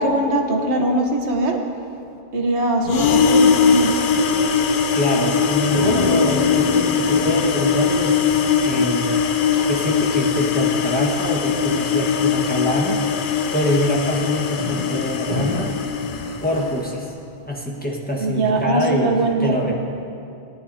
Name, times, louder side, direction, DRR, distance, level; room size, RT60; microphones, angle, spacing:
voice 1, 0.0-1.6 2.3-3.9 18.2-19.7, right 2 dB, 90° right, 3 dB, 1.3 m, -21 dB
sound 1, 2.9-16.8, left 6 dB, 60° left, 0.7 m, -20 dB
voice 2, 4.9-9.2 9.7-13.1 13.5-15.7 16.4-17.1 17.4-19.1 19.4-19.7, equal, 10° left, -3 dB, 1.4 m, -24 dB
sound 2, 5.7-16.9, left 2 dB, 55° right, 2.5 m, -31 dB
18.0 x 10.5 x 2.8 m, 2.6 s
omnidirectional pair, 1.1 m